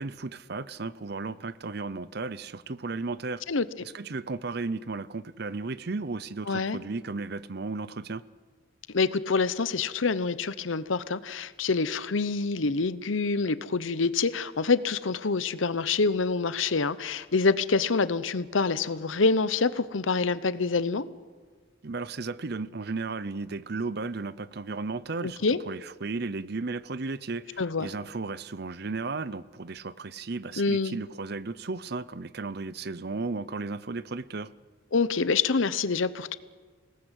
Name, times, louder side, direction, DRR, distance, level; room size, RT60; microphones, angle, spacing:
voice 1, 0.0-3.4 3.9-8.2 21.8-34.5, right 3 dB, 55° right, 0.7 m, -34 dB
voice 2, 6.5-6.8 8.9-21.1 25.2-25.6 27.6-27.9 30.6-31.0 34.9-36.4, left 4 dB, 85° left, 0.9 m, -26 dB
27.0 x 18.5 x 8.2 m
head